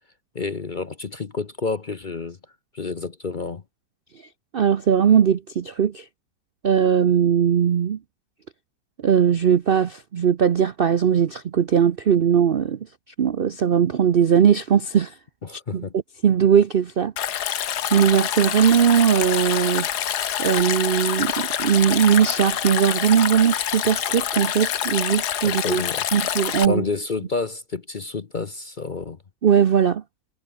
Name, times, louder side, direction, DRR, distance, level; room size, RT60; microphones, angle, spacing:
voice 1, 0.3-2.4 2.7-3.6 15.4-15.9 25.4-26.1 26.7-29.2, left 4 dB, 35° left, 0.8 m, -29 dB
voice 2, 4.5-6.1 6.6-8.0 9.0-12.8 13.2-15.2 15.5-17.1 17.9-19.9 20.4-25.8 26.1-26.8 29.4-30.0, right 8 dB, 55° right, 0.6 m, -19 dB
Stream, 17.2-26.7, left 10 dB, 70° left, 1.6 m, -26 dB
omnidirectional pair, 1.8 m